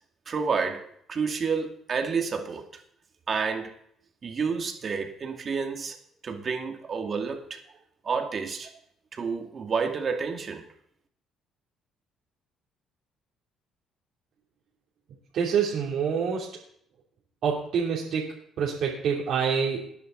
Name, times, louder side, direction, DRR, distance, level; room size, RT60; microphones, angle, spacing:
voice 1, 0.3-0.8 1.1-2.7 3.3-3.7 4.2-6.0 6.2-7.6 8.0-8.7 9.1-10.6, right 5 dB, 45° right, 3 dB, 2.4 m, -29 dB
voice 2, 15.3-16.5 17.4-19.9, right 6 dB, 70° right, -4 dB, 3.1 m, -27 dB
19.5 x 9.9 x 4.0 m, 0.69 s
cardioid pair, 85°, 0 cm